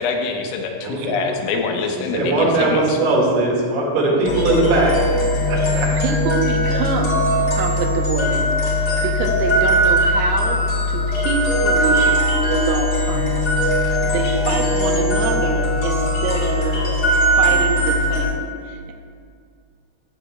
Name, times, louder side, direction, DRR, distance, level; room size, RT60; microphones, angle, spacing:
voice 1, 0.0-2.8, left 5 dB, 80° left, 2 dB, 3.0 m, -24 dB
voice 2, 0.8-1.4 2.0-5.0 5.5-5.9 14.0-14.2, right 2 dB, 70° right, -3 dB, 3.9 m, -20 dB
sound 1, 4.3-18.3, equal, 45° left, 1.8 m, -19 dB
voice 3, 6.0-12.1 12.5-13.5 13.8-16.8 17.4-18.9, right 5 dB, 85° right, 3 dB, 3.3 m, -26 dB
14.0 x 8.0 x 2.2 m, 2.1 s
omnidirectional pair, 5.8 m